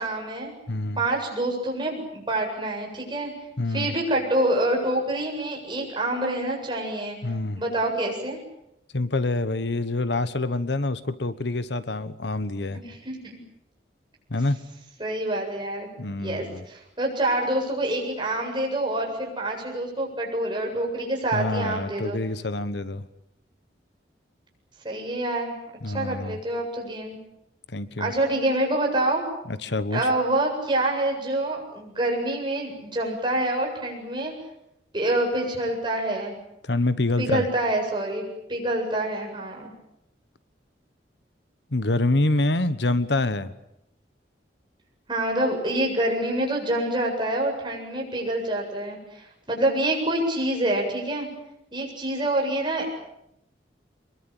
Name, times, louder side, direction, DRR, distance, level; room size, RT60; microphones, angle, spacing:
voice 1, 0.0-0.5 1.0-3.3 3.7-7.2 7.5-8.4 12.7-13.4 15.0-15.9 16.2-22.2 24.8-25.5 25.9-27.2 28.0-29.2 29.9-34.3 34.9-36.3 37.2-38.2 38.5-39.7 45.1-51.3 51.7-52.9, right 1 dB, 25° right, 1 dB, 7.8 m, -26 dB
voice 2, 0.7-1.0 3.6-3.9 7.2-7.6 8.9-12.8 14.3-14.6 16.0-16.6 21.3-23.0 25.8-26.4 27.7-28.1 29.5-30.0 36.6-37.4 41.7-43.5, left 2 dB, 70° left, 13 dB, 1.2 m, -26 dB
25.5 x 22.5 x 9.0 m, 0.82 s
head